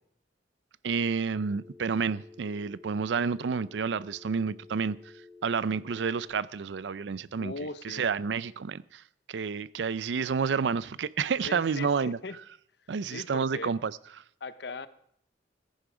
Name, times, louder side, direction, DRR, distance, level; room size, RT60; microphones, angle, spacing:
voice 1, 0.8-5.0 5.4-7.5 7.8-9.0 9.3-12.2 12.9-13.9, right 5 dB, 85° right, 0.5 m, -29 dB
Telephone, 1.3-6.3, left 3 dB, 5° right, 4.0 m, -52 dB
voice 2, 7.4-8.1 11.4-12.4 13.1-13.7 14.4-14.9, left 3 dB, 65° left, 0.7 m, -39 dB
15.5 x 10.5 x 5.0 m
head